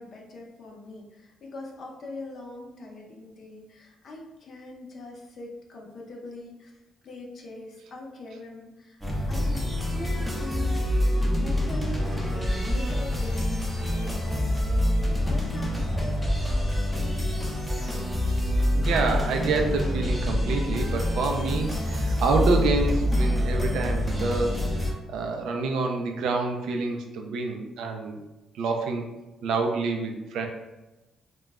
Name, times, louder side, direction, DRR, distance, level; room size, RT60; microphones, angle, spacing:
voice 1, 0.0-6.7 7.0-9.0 9.3-9.6 9.9-10.8 11.4-16.1 16.4-16.6 16.9-17.4, left 2 dB, 50° left, 0 dB, 0.6 m, -42 dB
sound 1, 9.0-24.9, left 1 dB, ahead, 0.6 m, -26 dB
voice 2, 18.7-24.6 25.1-28.2 28.6-29.0 29.4-30.5, right 3 dB, 85° right, 3 dB, 0.4 m, -27 dB
2.2 x 2.0 x 3.4 m, 1.0 s
cardioid pair, 105°, 0 cm